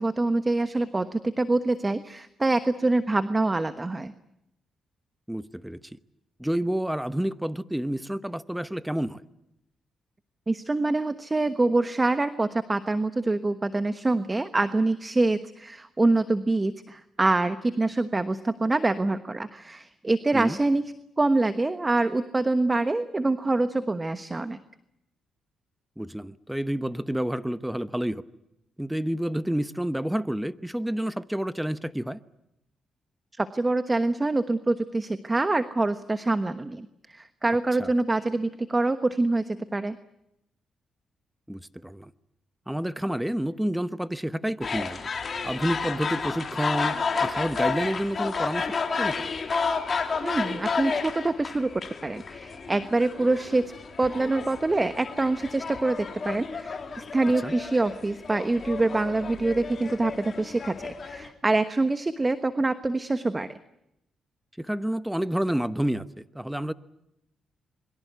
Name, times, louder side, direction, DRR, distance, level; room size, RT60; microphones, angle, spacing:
voice 1, 0.0-4.1 10.5-24.6 33.4-39.9 50.2-51.7 52.0-53.6 54.0-63.6, right 2 dB, 25° right, 1.2 m, -25 dB
voice 2, 5.3-5.8 6.4-9.2 20.3-20.6 26.0-28.2 28.8-32.2 37.8-37.9 41.5-42.1 42.7-45.0 45.4-47.0 47.2-48.7 49.0-49.3 57.4-57.5 64.6-66.7, right 1 dB, 5° right, 1.0 m, -29 dB
sound 1, 44.6-61.3, left 5 dB, 45° left, 3.2 m, -31 dB
27.0 x 23.0 x 8.2 m
cardioid pair, 75°, 0 cm